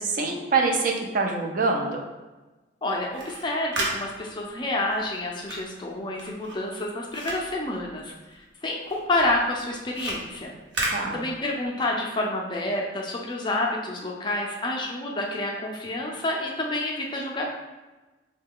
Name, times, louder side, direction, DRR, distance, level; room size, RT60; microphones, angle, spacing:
voice 1, 0.0-2.0 10.9-11.2, right 4 dB, 45° right, 2 dB, 0.4 m, -25 dB
voice 2, 2.8-10.6 11.1-17.4, left 2 dB, 25° left, 0 dB, 0.4 m, -29 dB
sound 1, 3.0-8.5 8.8-11.8, right 2 dB, 70° right, 0.8 m, -35 dB
3.6 x 2.2 x 3.6 m, 1.2 s
head